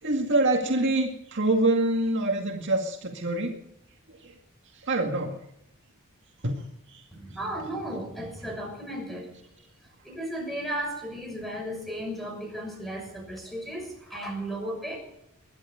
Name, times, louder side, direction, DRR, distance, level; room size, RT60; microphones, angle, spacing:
voice 1, 0.0-3.6 4.1-4.3 4.7-5.4 6.4-7.0, right 2 dB, 55° right, 2 dB, 2.1 m, -26 dB
voice 2, 7.1-9.3 10.0-15.0, right 1 dB, ahead, 1 dB, 6.2 m, -35 dB
21.0 x 11.5 x 5.1 m, 0.78 s
head